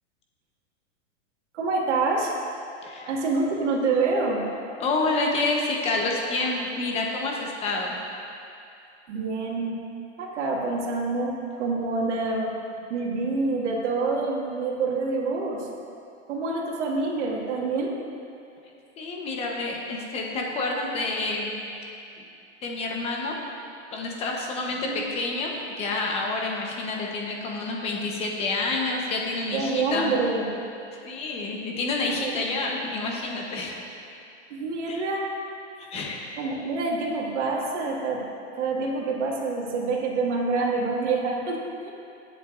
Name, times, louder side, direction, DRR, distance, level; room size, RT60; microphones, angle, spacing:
voice 1, 1.5-2.3 3.0-4.5 9.1-9.8 10.2-15.7 16.3-17.9 24.9-25.0 29.5-30.5 32.1-32.3 34.5-35.3 36.4-38.2 38.5-41.9, right 3 dB, 75° right, -2 dB, 2.1 m, -27 dB
voice 2, 2.8-3.1 4.8-8.0 19.0-21.5 22.2-22.3 22.6-23.4 23.9-30.1 31.0-33.8 34.9-35.1 35.9-36.2, left 3 dB, 15° left, 0 dB, 1.0 m, -28 dB
17.5 x 8.1 x 2.6 m, 2.6 s
supercardioid pair, 160°, 36 cm